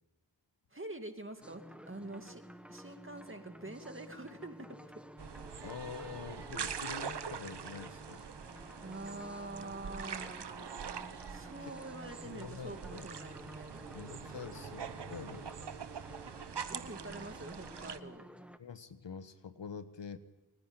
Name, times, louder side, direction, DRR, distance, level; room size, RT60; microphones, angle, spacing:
voice 1, 0.7-2.4 2.7-4.9 6.5-6.7 8.8-10.5 11.3-13.8 16.7-18.2, right 2 dB, 25° right, 6 dB, 2.4 m, -46 dB
sound 1, 1.4-18.6, equal, 5° right, 1.2 m, -52 dB
sound 2, 5.2-18.0, right 7 dB, 65° right, 1.1 m, -44 dB
voice 2, 5.6-8.2 11.6-11.8 12.2-13.1 13.9-15.5 18.6-20.2, left 6 dB, 70° left, 11 dB, 1.4 m, -46 dB
28.5 x 10.0 x 9.0 m, 1.1 s
cardioid pair, 40°, 45 cm